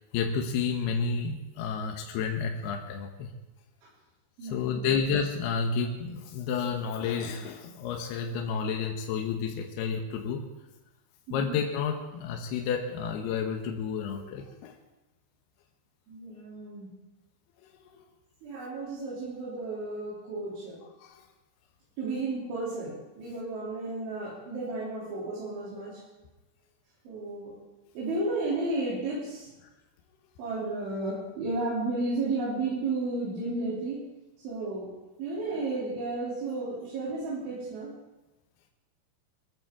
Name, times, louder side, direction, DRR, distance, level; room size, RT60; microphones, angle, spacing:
voice 1, 0.0-3.3 4.4-10.5 11.3-14.8 17.9-18.0 21.0-21.2, left 6 dB, 70° left, 2 dB, 2.7 m, -31 dB
voice 2, 4.4-4.9 11.3-11.6 16.1-16.9 18.4-20.8 22.0-26.0 27.1-27.5 28.0-29.5 30.4-34.0 34.4-34.9 35.2-37.9, right 2 dB, 75° right, -7 dB, 5.5 m, -33 dB
23.0 x 14.5 x 3.7 m, 1.0 s
omnidirectional pair, 5.5 m